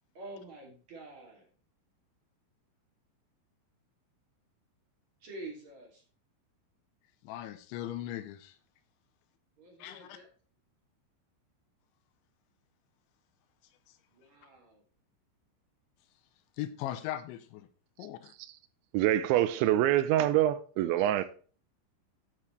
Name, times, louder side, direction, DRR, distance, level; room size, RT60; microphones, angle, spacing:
voice 1, 0.2-1.5 5.2-6.0 9.6-10.3 14.1-14.8 20.8-21.1, right 2 dB, 40° right, 3.4 m, -47 dB
voice 2, 7.2-8.6 9.8-10.2 16.6-17.7 18.0-18.3, left 13 dB, 80° left, 2.9 m, -39 dB
voice 3, 18.9-21.3, right 13 dB, 80° right, 2.8 m, -25 dB
11.0 x 7.8 x 3.2 m
omnidirectional pair, 5.8 m